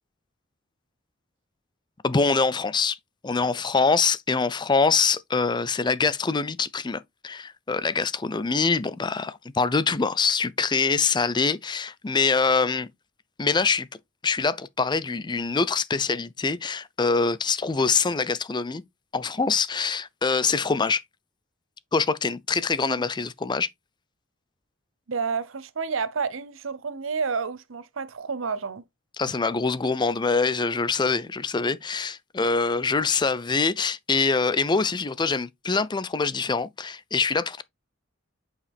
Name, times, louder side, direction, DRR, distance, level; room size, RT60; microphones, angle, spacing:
voice 1, 2.0-3.0 3.2-12.9 13.4-13.9 14.2-18.8 19.1-21.0 21.9-23.7 29.2-37.6, left 4 dB, 25° left, 0.5 m, -24 dB
voice 2, 25.1-28.8, right 5 dB, 85° right, 0.7 m, -30 dB
8.4 x 4.9 x 3.4 m
head